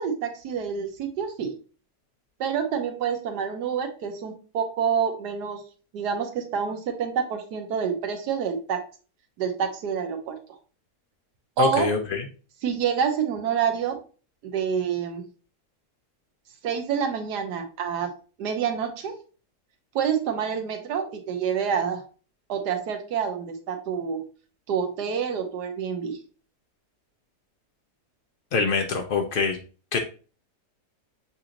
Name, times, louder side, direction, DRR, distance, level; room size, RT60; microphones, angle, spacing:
voice 1, 0.0-1.5 2.4-5.6 5.9-8.8 9.4-10.4 11.6-11.9 12.6-14.0 14.4-15.2 16.6-19.1 19.9-22.0 22.5-24.2 24.7-26.2, right 7 dB, 85° right, 5 dB, 1.4 m, -27 dB
voice 2, 11.6-12.2 28.5-29.6 29.9-30.0, left 5 dB, 90° left, 4 dB, 0.4 m, -24 dB
6.8 x 2.5 x 2.8 m, 0.36 s
omnidirectional pair, 1.7 m